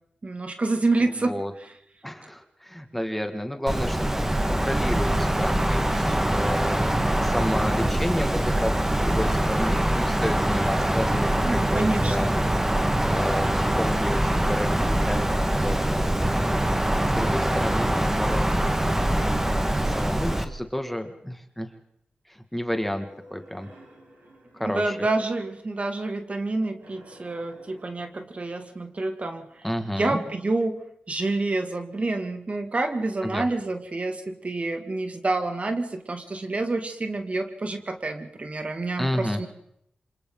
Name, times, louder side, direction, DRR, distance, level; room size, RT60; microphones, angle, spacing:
voice 1, 0.2-1.3 11.4-12.4 24.6-29.6 29.9-30.8 31.1-39.5, right 2 dB, 45° right, 6 dB, 2.4 m, -28 dB
voice 2, 1.0-1.5 2.0-4.0 4.5-6.8 7.2-12.3 13.1-16.1 17.0-18.5 19.9-21.7 22.3-23.7 24.5-25.0 29.6-30.2 33.2-33.5 39.0-39.4, equal, 5° left, 6 dB, 2.1 m, -31 dB
Wind, 3.7-20.4, right 1 dB, 15° right, 1.6 m, -23 dB
sound 1, 19.8-20.7 22.9-25.4 26.8-28.1, equal, 85° right, 7.9 m, -49 dB
27.5 x 26.0 x 4.0 m, 0.73 s
cardioid pair, 60°, 3 cm